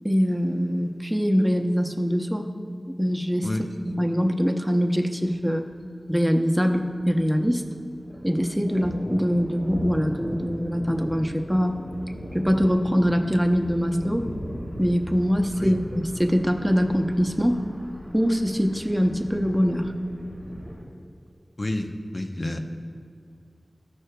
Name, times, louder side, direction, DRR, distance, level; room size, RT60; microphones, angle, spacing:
voice 1, 0.0-2.5 3.0-3.5 3.8-5.7 6.1-7.6 8.2-11.9 12.3-14.3 14.8-17.6 18.1-19.9, equal, 5° right, 4 dB, 0.7 m, -23 dB
Thunder, 5.2-5.4 5.7-5.8 6.1-7.6 7.8-20.8, equal, 85° left, 1.8 m, -38 dB
voice 2, 21.6-22.6, left 1 dB, 55° left, 4 dB, 0.6 m, -29 dB
13.5 x 6.3 x 2.3 m, 2.3 s
wide cardioid pair, 40°, 0 cm